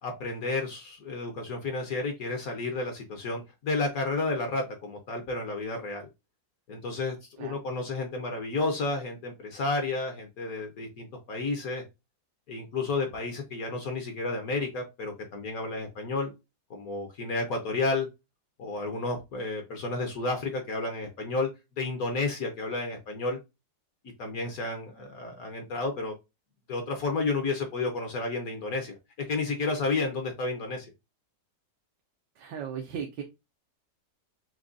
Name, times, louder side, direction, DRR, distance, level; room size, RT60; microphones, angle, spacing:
voice 1, 0.0-6.1 6.7-11.8 12.5-16.3 16.7-18.1 18.6-21.5 21.8-23.4 24.2-26.1 26.7-28.9 29.3-30.9, left 3 dB, 60° left, 1.2 m, -31 dB
voice 2, 32.4-33.2, right 7 dB, 85° right, 1.3 m, -36 dB
6.0 x 2.3 x 2.5 m
omnidirectional pair, 1.9 m